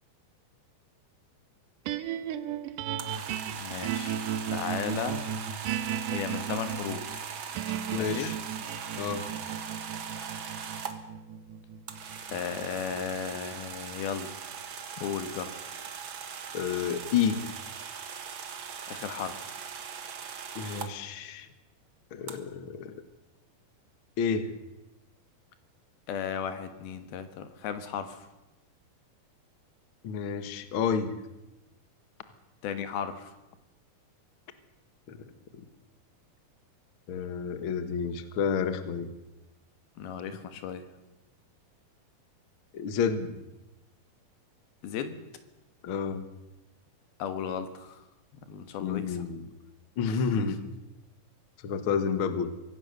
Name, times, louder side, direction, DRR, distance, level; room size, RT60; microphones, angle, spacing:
sound 1, 1.9-14.2, right 9 dB, 70° right, 2.3 m, -36 dB
sound 2, 2.9-10.9 11.9-20.9 22.3-22.4, right 7 dB, 50° right, 1.5 m, -40 dB
voice 1, 3.6-5.3 6.1-7.3 8.0-8.3 12.3-14.5 15.0-15.6 18.9-19.6 26.1-28.3 32.6-33.4 40.0-40.9 44.8-45.2 47.2-48.1 48.5-49.2 50.0-50.7, left 7 dB, 85° left, 10 dB, 3.4 m, -35 dB
voice 2, 7.9-8.4 8.9-9.3 16.5-17.5 20.5-21.5 22.1-23.0 24.2-24.5 30.0-31.1 35.1-35.2 35.5-35.7 37.1-39.1 42.7-43.4 45.8-46.3 48.8-49.5 50.0-50.6 51.6-52.5, left 6 dB, 55° left, 10 dB, 1.5 m, -30 dB
24.5 x 17.5 x 6.7 m, 1.0 s
omnidirectional pair, 4.2 m